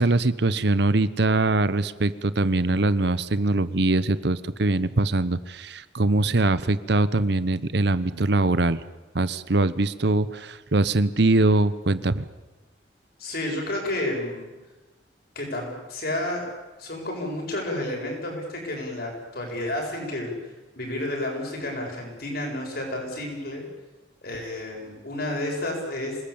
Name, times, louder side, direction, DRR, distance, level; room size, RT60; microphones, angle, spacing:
voice 1, 0.0-8.8 9.1-12.3, right 2 dB, 60° right, 15 dB, 1.0 m, -22 dB
voice 2, 13.2-14.5 15.3-16.5 16.8-20.4 20.8-23.6 24.2-26.2, left 1 dB, 55° left, 0 dB, 7.9 m, -31 dB
27.0 x 19.5 x 8.8 m, 1.2 s
head